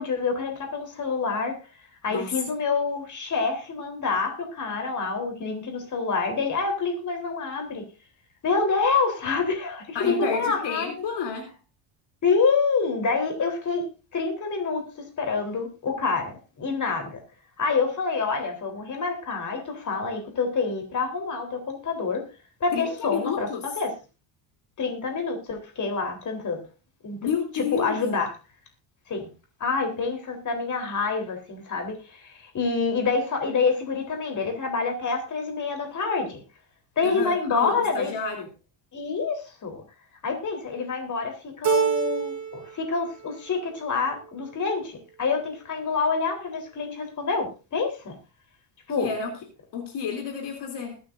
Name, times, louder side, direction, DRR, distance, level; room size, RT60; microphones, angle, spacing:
voice 1, 0.0-1.6 2.0-7.8 8.4-10.9 12.2-13.8 14.1-17.2 17.6-22.2 22.6-23.9 24.8-26.6 27.0-27.2 27.5-28.3 29.1-29.3 29.6-36.4 37.0-38.1 38.9-39.8 40.2-48.2 48.9-49.1, left 4 dB, 35° left, 4 dB, 3.8 m, -27 dB
voice 2, 9.9-11.6 22.7-23.6 27.2-28.0 37.0-38.5 49.0-49.4 49.7-51.0, left 6 dB, 55° left, 3 dB, 3.2 m, -30 dB
Keyboard (musical), 41.6-42.8 43.1-43.8, right 7 dB, 40° right, 2.5 m, -26 dB
21.0 x 9.3 x 2.6 m, 0.31 s
cardioid pair, 120°, 48 cm